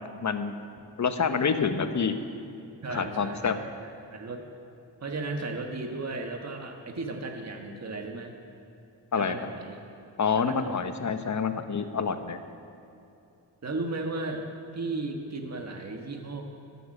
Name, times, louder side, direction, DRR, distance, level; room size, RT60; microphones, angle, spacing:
voice 1, 0.2-0.5 1.0-2.2 2.9-3.6 9.1-9.3 10.2-12.4, left 6 dB, 40° left, 9 dB, 0.9 m, -27 dB
voice 2, 2.8-3.7 4.1-4.4 5.0-8.3 9.1-9.8 10.3-10.9 13.6-14.5 14.7-16.4, right 2 dB, 35° right, 3 dB, 1.4 m, -35 dB
13.0 x 7.2 x 7.3 m, 2.7 s
cardioid pair, 70°, 43 cm